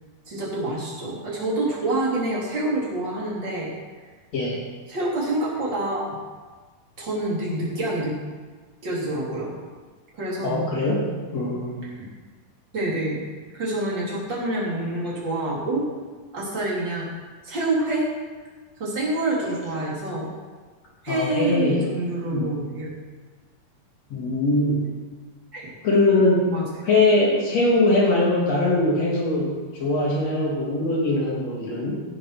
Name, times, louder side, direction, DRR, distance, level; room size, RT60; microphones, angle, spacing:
voice 1, 0.3-3.7 4.9-6.2 7.0-8.2 8.8-9.5 10.1-10.6 11.8-12.1 12.7-13.2 13.5-15.9 16.3-17.1 17.4-18.1 18.8-20.3 21.0-22.9 25.5-25.7 26.5-26.6, right 2 dB, 30° right, -6 dB, 4.0 m, -27 dB
voice 2, 10.4-11.9 21.1-21.8 22.3-22.7 24.1-24.8 25.8-26.5 26.8-32.0, left 2 dB, 50° left, -4 dB, 4.0 m, -22 dB
17.5 x 7.3 x 6.0 m, 1.4 s
omnidirectional pair, 4.2 m